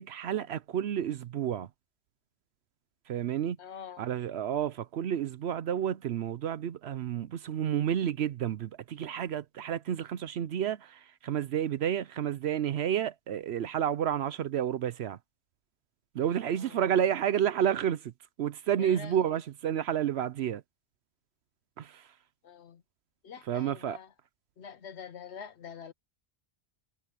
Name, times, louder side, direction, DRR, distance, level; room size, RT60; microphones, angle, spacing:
voice 1, 0.0-1.7 3.1-3.6 4.0-15.2 16.1-18.1 18.4-20.6 21.8-22.1 23.5-24.0, right 9 dB, 70° right, 0.9 m, -30 dB
voice 2, 3.6-4.0 16.6-16.8 18.8-19.4 22.4-22.8 23.2-24.1 24.6-25.9, left 7 dB, 75° left, 1.1 m, -45 dB
omnidirectional pair, 1.2 m